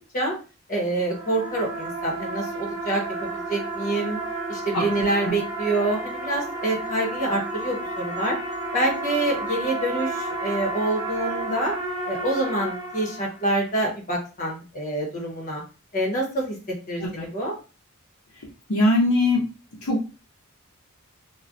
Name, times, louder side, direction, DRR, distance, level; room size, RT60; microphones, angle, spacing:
voice 1, 0.7-3.0 3.3-4.2 4.5-8.4 8.7-11.7 12.1-15.6 15.9-16.5 16.9-17.5, right 1 dB, 35° left, -2 dB, 1.1 m, -26 dB
sound 1, 0.8-13.6, right 2 dB, 20° right, 1.0 m, -31 dB
voice 2, 18.7-19.4 19.8-20.0, left 1 dB, 70° left, -5 dB, 0.7 m, -21 dB
3.1 x 2.2 x 2.5 m, 0.34 s
head